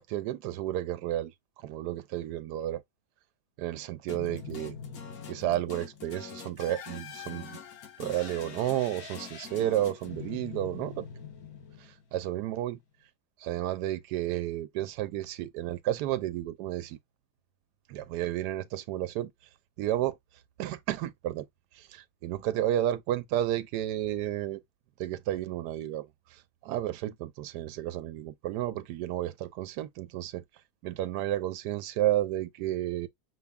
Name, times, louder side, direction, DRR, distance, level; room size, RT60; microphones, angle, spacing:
voice 1, 0.0-2.8 3.6-4.8 5.3-7.6 8.0-11.1 11.8-12.8 13.4-17.0 17.9-19.3 19.8-20.2 20.6-21.5 21.7-24.6 25.0-30.4 30.8-33.1, right 13 dB, 90° right, 1.2 m, -32 dB
sound 1, 4.1-12.3, left 7 dB, 65° left, 1.5 m, -43 dB
5.8 x 2.0 x 3.5 m
omnidirectional pair, 1.7 m